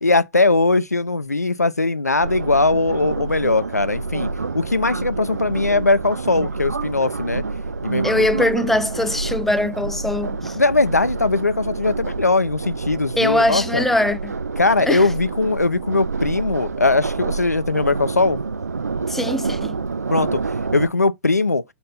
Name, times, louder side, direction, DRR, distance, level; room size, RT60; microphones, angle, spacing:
voice 1, 0.0-7.4 7.8-8.4 10.5-13.8 14.6-18.4 20.1-20.4 20.7-21.6, left 3 dB, 90° left, 0.4 m, -20 dB
sound 1, 2.2-20.9, right 4 dB, 80° right, 0.4 m, -28 dB
voice 2, 8.0-10.6 13.2-14.4 14.8-15.1 19.1-19.8, left 1 dB, 5° left, 0.4 m, -22 dB
6.9 x 2.6 x 5.5 m
figure-of-eight pair, 105°, 8 cm